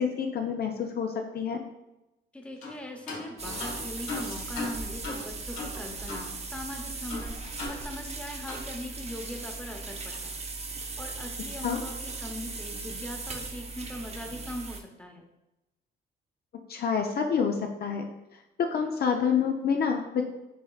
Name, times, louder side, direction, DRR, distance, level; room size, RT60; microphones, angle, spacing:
voice 1, 0.0-1.6 11.6-11.8 16.7-18.0 18.6-20.2, left 6 dB, 50° left, 3 dB, 0.5 m, -27 dB
voice 2, 2.3-10.4 10.8-15.3, left 1 dB, 5° left, 2 dB, 0.9 m, -40 dB
sound 1, 2.6-2.8 3.1-6.3 6.6-6.7 7.1-8.2 8.5-8.7, left 2 dB, 85° left, 1.2 m, -38 dB
sound 2, 3.4-14.8, right 3 dB, 30° right, 0.6 m, -38 dB
6.9 x 3.2 x 2.4 m, 0.95 s
cardioid pair, 90°, 20 cm